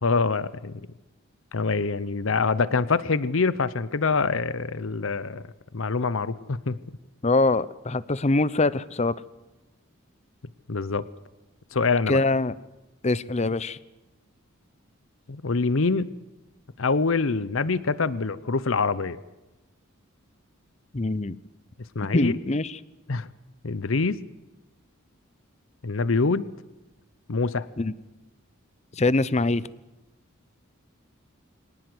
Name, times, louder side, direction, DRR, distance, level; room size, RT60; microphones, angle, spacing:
voice 1, 0.0-0.8 1.5-5.4 5.7-6.8 10.7-11.1 11.7-12.2 15.3-16.1 16.8-19.2 21.9-22.3 23.1-23.3 23.6-24.2 25.8-26.5 27.3-27.7, left 4 dB, 65° left, 17 dB, 0.8 m, -25 dB
voice 2, 7.2-9.1 12.1-12.5 13.0-13.8 20.9-21.4 22.1-22.7 27.8-27.9 28.9-29.6, left 2 dB, 30° left, 18 dB, 0.7 m, -23 dB
24.5 x 18.5 x 7.9 m, 1.0 s
head